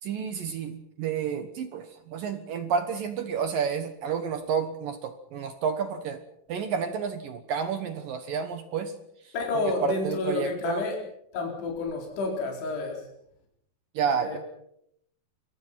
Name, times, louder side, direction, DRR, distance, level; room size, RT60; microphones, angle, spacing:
voice 1, 0.0-6.2 6.5-8.9 9.2-10.8 13.9-14.4, right 7 dB, 65° right, 9 dB, 2.3 m, -30 dB
voice 2, 9.3-11.0 11.3-13.1 14.1-14.4, left 3 dB, 55° left, 0 dB, 6.2 m, -30 dB
27.0 x 22.5 x 5.9 m, 0.75 s
omnidirectional pair, 5.6 m